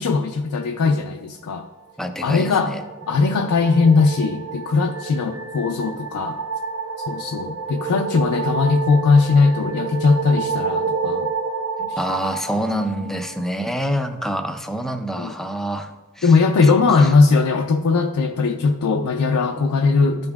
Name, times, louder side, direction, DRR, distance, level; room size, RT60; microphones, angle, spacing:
voice 1, 0.0-1.7 2.2-2.7 3.1-6.4 7.1-11.3 11.8-12.0 13.0-13.1 15.2-15.3 16.2-20.3, left 4 dB, 85° left, 3 dB, 0.4 m, -19 dB
voice 2, 2.0-2.8 11.9-17.1, equal, ahead, 6 dB, 0.4 m, -27 dB
sound 1, 2.2-13.6, right 4 dB, 60° right, 0.8 m, -29 dB
13.0 x 5.3 x 2.3 m, 1.2 s
head